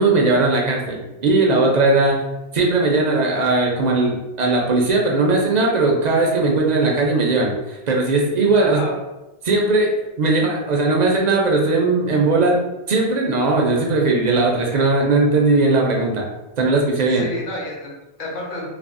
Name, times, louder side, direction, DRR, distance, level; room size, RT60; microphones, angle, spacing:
voice 1, 0.0-2.2 2.5-8.8 9.4-12.6 12.9-16.3 16.6-17.2, right 3 dB, 55° right, -1 dB, 0.5 m, -18 dB
voice 2, 8.6-9.0 17.1-18.7, left 1 dB, 55° left, -3 dB, 0.8 m, -30 dB
3.3 x 2.0 x 2.4 m, 1.0 s
omnidirectional pair, 1.1 m